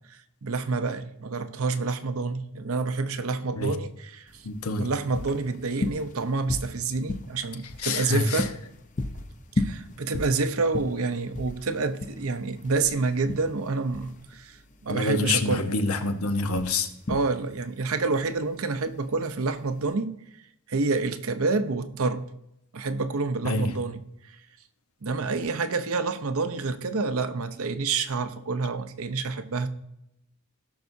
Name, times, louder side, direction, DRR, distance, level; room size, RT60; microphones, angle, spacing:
voice 1, 0.0-4.5 4.7-8.6 9.6-15.7 17.1-20.2 20.7-22.2 22.7-24.3 25.0-29.7, right 3 dB, 70° right, 0.7 m, -28 dB
sound 1, 4.3-19.9, left 2 dB, 35° left, 0.7 m, -35 dB
voice 2, 4.4-4.9 7.8-8.5 14.9-16.9 23.4-23.7, left 3 dB, 75° left, 1.0 m, -26 dB
18.0 x 6.1 x 2.7 m
head